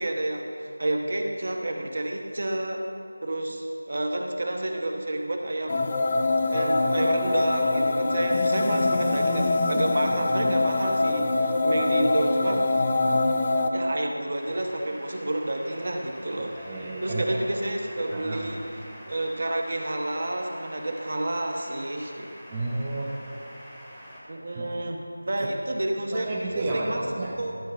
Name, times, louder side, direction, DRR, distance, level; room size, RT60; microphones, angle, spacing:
voice 1, 0.0-2.8 3.2-5.9 6.5-12.6 13.7-22.3 24.3-27.0 27.4-27.5, right 1 dB, 50° right, 3 dB, 1.0 m, -30 dB
sound 1, 5.7-13.7, left 2 dB, 25° left, 0.5 m, -24 dB
sound 2, 14.3-24.2, equal, ahead, 1.0 m, -45 dB
voice 2, 16.5-17.4 18.1-18.6 22.5-23.2 24.5-24.7 26.1-27.6, right 2 dB, 15° right, -5 dB, 0.6 m, -32 dB
12.5 x 5.4 x 5.3 m, 2.4 s
figure-of-eight pair, 170°, 0 cm